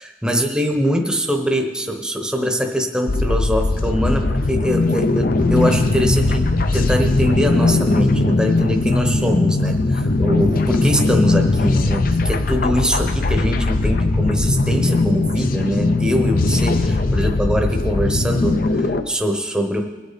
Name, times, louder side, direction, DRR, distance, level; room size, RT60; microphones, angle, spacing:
voice 1, 0.2-6.5 6.7-19.8, equal, 5° right, 3 dB, 1.0 m, -22 dB
sound 1, 3.1-19.0, left 2 dB, 45° left, 0.6 m, -19 dB
21.5 x 8.4 x 4.2 m, 1.4 s
head